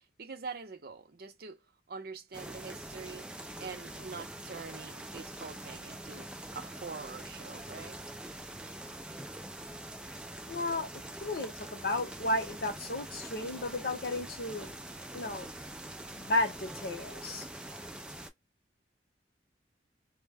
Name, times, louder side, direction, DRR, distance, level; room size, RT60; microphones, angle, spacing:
voice 1, 0.0-1.6 1.9-3.3 3.6-8.0, right 4 dB, 55° right, 0.6 m, -44 dB
sound 1, 2.3-18.3, right 1 dB, 5° right, 0.4 m, -44 dB
voice 2, 10.5-14.8 15.1-15.5 16.2-17.5, left 2 dB, 55° left, 0.8 m, -33 dB
2.1 x 2.1 x 3.4 m
head